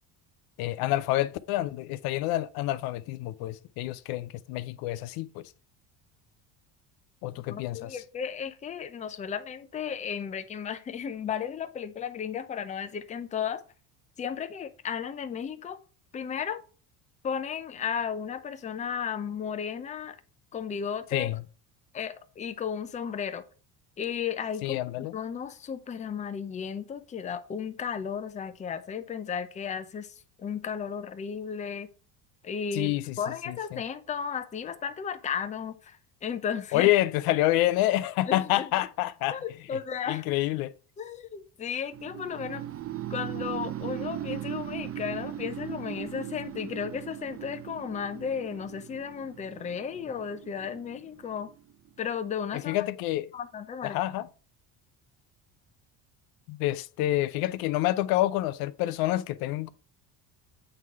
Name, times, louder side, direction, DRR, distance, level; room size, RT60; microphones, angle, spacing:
voice 1, 0.6-5.4 7.2-8.0 21.1-21.4 24.6-25.1 32.7-33.2 33.5-33.8 36.7-39.4 40.1-40.7 52.7-53.3 53.8-54.3 56.5-59.7, left 15 dB, 75° left, 0.5 m, -28 dB
voice 2, 7.5-13.6 14.2-15.8 16.1-16.6 17.2-20.2 20.5-21.3 21.9-23.4 24.0-31.9 32.4-36.9 38.3-38.7 39.3-40.2 41.0-42.6 43.1-51.5 52.0-52.8 53.3-54.0, left 7 dB, 20° left, 0.5 m, -34 dB
sound 1, 41.9-51.9, right 12 dB, 40° right, 0.5 m, -38 dB
7.9 x 3.8 x 4.6 m
cardioid pair, 135°, 37 cm